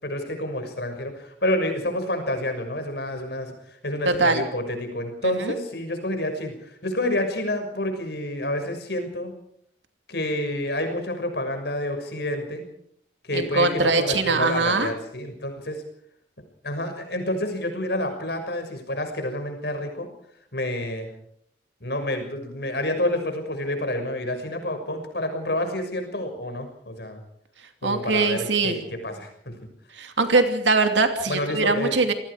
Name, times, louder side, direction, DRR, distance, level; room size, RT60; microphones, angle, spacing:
voice 1, 0.0-9.3 10.1-12.6 13.3-15.8 16.6-20.1 20.5-21.1 21.8-27.2 27.8-29.5 31.3-31.9, left 1 dB, 60° left, 6 dB, 6.3 m, -28 dB
voice 2, 4.0-4.4 5.2-5.6 13.3-14.9 27.8-28.8 29.9-32.1, right 3 dB, 80° right, 6 dB, 2.7 m, -22 dB
28.0 x 19.5 x 5.0 m, 0.68 s
head